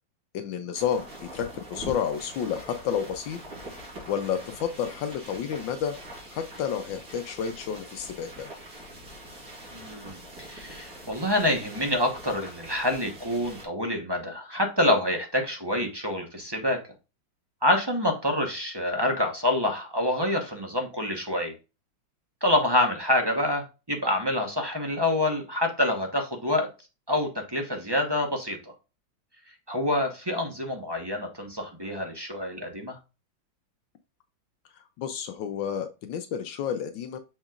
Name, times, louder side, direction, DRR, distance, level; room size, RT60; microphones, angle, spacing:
voice 1, 0.3-3.4 4.1-5.9 6.3-8.5 35.0-37.2, left 8 dB, 75° left, 8 dB, 1.4 m, -30 dB
sound 1, 0.7-13.6, right 1 dB, 50° right, 3.7 m, -44 dB
voice 2, 9.7-16.8 17.6-21.5 22.4-26.7 27.1-28.6 29.7-33.0, left 1 dB, 20° right, 2 dB, 0.8 m, -27 dB
6.6 x 5.9 x 2.4 m, 0.29 s
omnidirectional pair, 2.1 m